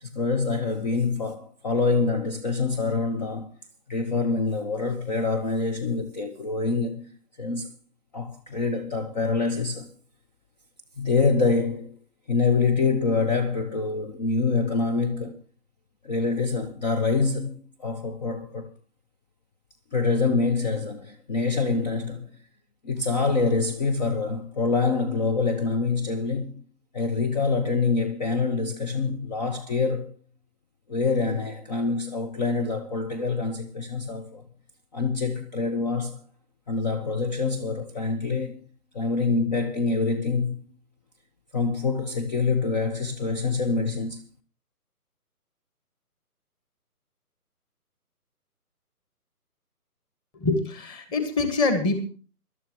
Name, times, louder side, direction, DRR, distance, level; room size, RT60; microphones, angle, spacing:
voice 1, 0.0-3.5 3.9-7.1 7.4-7.7 8.1-9.9 11.0-11.9 12.3-15.4 16.0-18.7 19.9-22.3 22.8-26.5 26.9-30.1 30.9-34.4 34.9-36.2 36.7-38.6 38.9-40.6 41.5-44.2, left 4 dB, 25° left, 1.2 m, -25 dB
voice 2, 50.3-52.0, left 3 dB, 10° left, 1.6 m, -25 dB
24.0 x 12.5 x 3.0 m
figure-of-eight pair, 145°, 47 cm